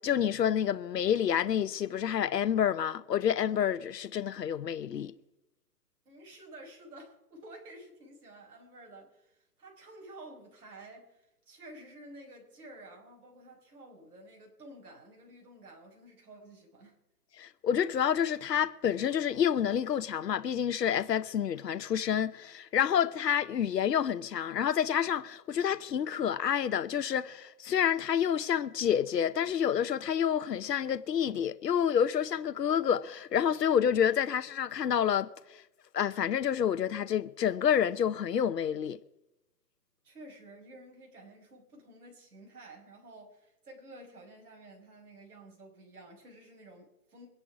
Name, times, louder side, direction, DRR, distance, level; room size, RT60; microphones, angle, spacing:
voice 1, 0.0-5.1 17.4-35.6 35.9-39.0, left 9 dB, 85° left, 0.9 m, -28 dB
voice 2, 6.1-17.0 40.0-47.3, right 1 dB, 65° right, 5.7 m, -51 dB
23.5 x 10.5 x 4.9 m
hypercardioid pair, 175°, 48 cm